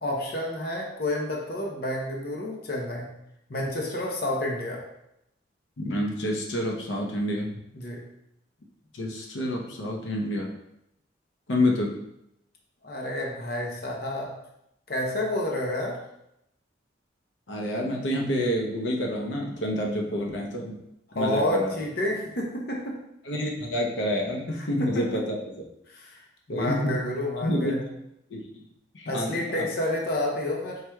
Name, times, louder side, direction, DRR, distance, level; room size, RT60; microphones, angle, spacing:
voice 1, 0.0-3.1 3.5-4.9 7.7-8.0 12.8-14.3 14.9-16.0 21.1-23.0 24.6-25.2 25.9-27.8 29.1-30.8, left 1 dB, 55° left, 0 dB, 0.7 m, -30 dB
voice 2, 5.8-7.5 8.9-10.5 11.5-12.0 17.5-20.8 21.1-21.7 23.2-25.4 26.5-26.9 27.4-27.8 28.3-28.5 28.9-29.7, left 1 dB, 85° left, 0 dB, 0.7 m, -28 dB
4.8 x 4.6 x 2.2 m, 0.81 s
head